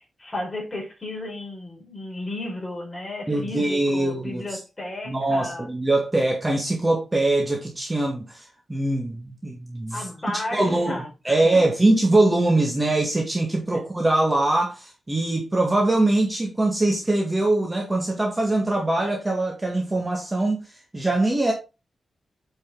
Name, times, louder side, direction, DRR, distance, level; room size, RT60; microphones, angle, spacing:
voice 1, 0.0-5.7 9.9-11.4, left 1 dB, 20° left, 4.9 m, -33 dB
voice 2, 3.3-4.6 5.1-10.1 10.5-11.0 11.2-21.5, right 2 dB, 15° right, 1.8 m, -22 dB
8.7 x 5.5 x 3.8 m
wide cardioid pair, 110°, 0 cm